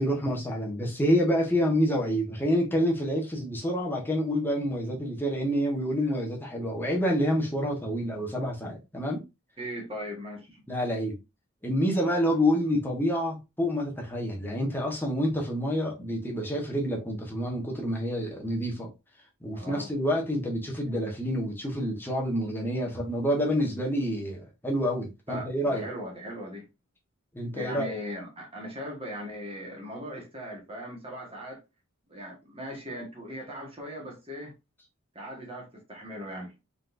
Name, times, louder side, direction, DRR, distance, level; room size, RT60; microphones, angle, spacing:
voice 1, 0.0-9.2 10.7-11.2 11.6-18.9 19.4-25.8 27.3-27.9, equal, 10° left, 1.2 m, -28 dB
voice 2, 9.6-10.5 19.5-19.9 25.3-26.7 27.5-31.6 32.1-34.5 35.1-36.5, equal, 25° right, 1.5 m, -39 dB
4.2 x 3.9 x 2.6 m
head